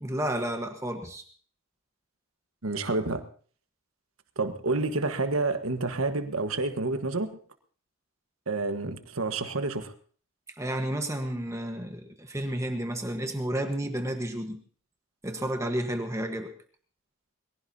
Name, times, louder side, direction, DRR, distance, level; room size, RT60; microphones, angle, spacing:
voice 1, 0.0-1.2 10.6-14.6 15.2-16.5, right 1 dB, 15° right, 5 dB, 1.4 m, -31 dB
voice 2, 2.6-3.2 4.4-7.3 8.5-9.9, right 3 dB, 85° right, 8 dB, 1.6 m, -29 dB
22.5 x 16.5 x 2.9 m, 0.44 s
head